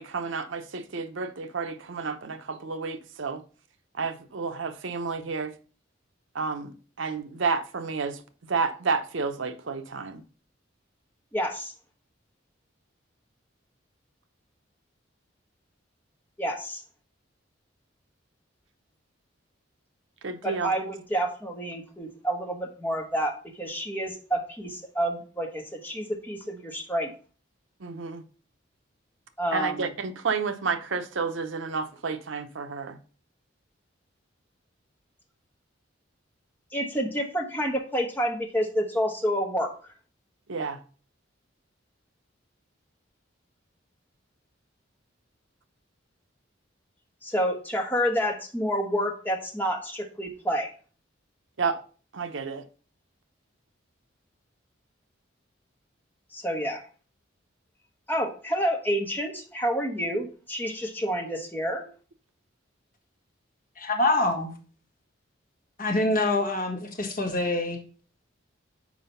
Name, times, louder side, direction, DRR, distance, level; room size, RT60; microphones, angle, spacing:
voice 1, 0.0-3.4 4.0-5.5 6.3-6.7 7.0-8.2 8.5-10.2 20.2-20.7 27.8-28.2 29.5-33.0 40.5-40.8 51.6-51.8 52.1-52.6, right 5 dB, 80° right, 0.7 m, -30 dB
voice 2, 11.3-11.7 16.4-16.8 20.4-27.1 29.4-29.9 36.7-39.7 47.2-50.7 56.3-56.8 58.1-61.8, equal, 10° left, 1.1 m, -29 dB
voice 3, 63.8-64.5 65.8-67.8, left 2 dB, 45° left, 1.5 m, -25 dB
6.0 x 4.8 x 5.5 m
head